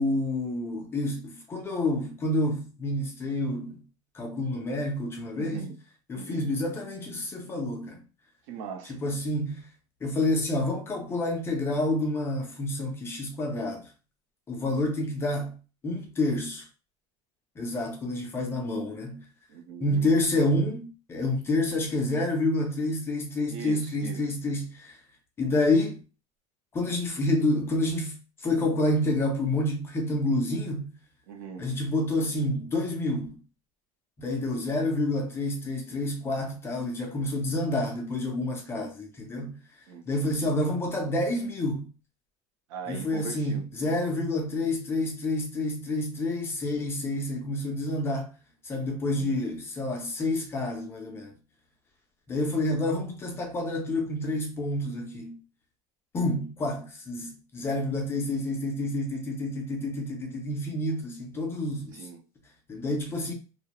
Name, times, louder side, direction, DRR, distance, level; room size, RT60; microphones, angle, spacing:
voice 1, 0.0-3.8 4.1-5.7 6.1-8.0 8.9-9.6 10.0-13.8 14.5-15.6 15.8-16.7 17.6-19.2 19.8-25.0 25.4-26.0 26.7-30.9 31.6-33.4 34.2-39.6 40.1-41.9 42.9-48.3 48.6-51.3 52.3-55.4 56.1-62.0 62.7-63.3, left 1 dB, 15° left, 0.3 m, -28 dB
voice 2, 5.4-5.8 6.1-6.5 8.5-9.0 19.5-20.1 23.5-24.3 31.3-31.7 39.9-40.0 42.7-43.6 48.8-49.4 61.9-62.2, right 6 dB, 70° right, 0.6 m, -40 dB
2.3 x 2.1 x 2.8 m
cardioid pair, 170°, 16 cm